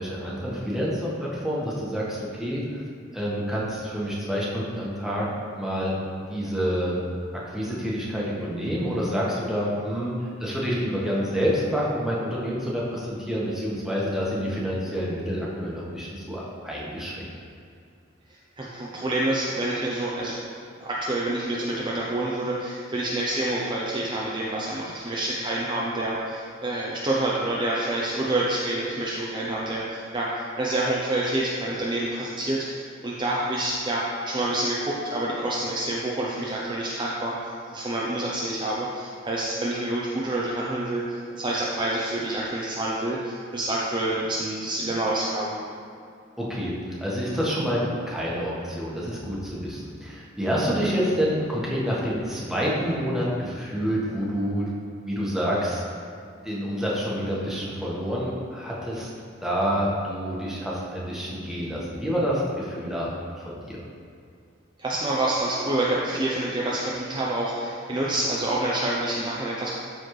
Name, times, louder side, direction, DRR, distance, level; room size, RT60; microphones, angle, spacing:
voice 1, 0.0-2.6 3.1-5.3 5.5-6.0 6.3-7.0 7.3-17.3 46.4-46.7 47.0-54.7 55.0-55.8 56.4-59.1 59.4-63.1 63.4-63.8, equal, ahead, -6 dB, 1.3 m, -28 dB
voice 2, 18.6-20.4 20.8-45.5 64.8-69.7, right 1 dB, 25° right, -5 dB, 0.7 m, -27 dB
12.5 x 4.2 x 3.2 m, 2.4 s
head